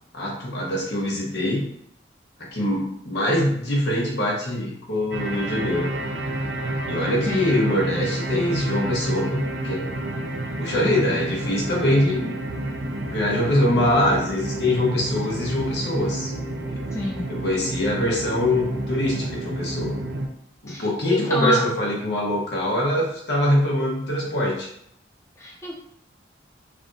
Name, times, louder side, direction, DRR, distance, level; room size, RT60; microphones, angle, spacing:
voice 1, 0.1-1.7 2.5-5.9 6.8-9.9 10.6-12.3 13.1-16.3 16.7-16.8 17.3-20.0 20.6-24.7, left 1 dB, 70° left, -3 dB, 1.1 m, -23 dB
sound 1, 5.1-20.3, right 1 dB, 70° right, 0.5 m, -29 dB
voice 2, 16.9-17.3 20.7-21.6 25.4-25.7, equal, 15° left, -3 dB, 0.4 m, -27 dB
3.4 x 2.5 x 3.8 m, 0.71 s
head